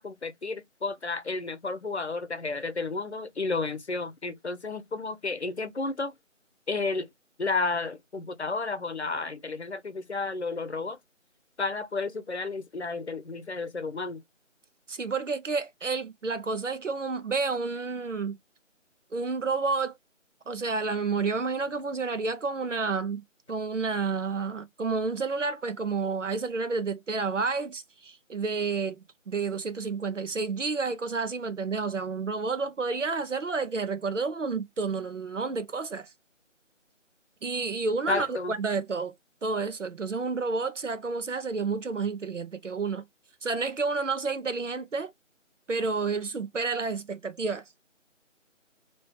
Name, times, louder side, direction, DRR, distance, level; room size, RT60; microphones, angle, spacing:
voice 1, 0.0-6.1 6.7-7.1 7.4-11.0 11.6-14.2 38.1-38.5, left 3 dB, 55° left, 0.8 m, -32 dB
voice 2, 14.9-18.4 19.1-19.9 20.5-23.2 23.5-29.0 29.3-36.1 37.4-39.1 39.4-43.0 43.4-45.1 45.7-47.6, right 4 dB, 70° right, 0.8 m, -30 dB
3.0 x 3.0 x 3.6 m
figure-of-eight pair, 165°, 39 cm